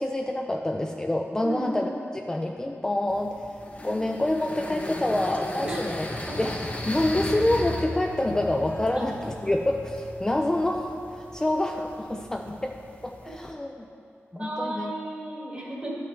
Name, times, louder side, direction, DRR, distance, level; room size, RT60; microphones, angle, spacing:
voice 1, 0.0-3.5 3.8-6.1 6.4-12.7 13.0-13.7 14.3-14.9, left 1 dB, 15° left, 2 dB, 0.3 m, -27 dB
sound 1, 3.1-13.5, left 1 dB, 30° left, 0.8 m, -37 dB
voice 2, 14.3-16.0, right 1 dB, 25° right, -3 dB, 1.7 m, -34 dB
12.5 x 6.1 x 3.5 m, 2.8 s
wide cardioid pair, 120°, 5 cm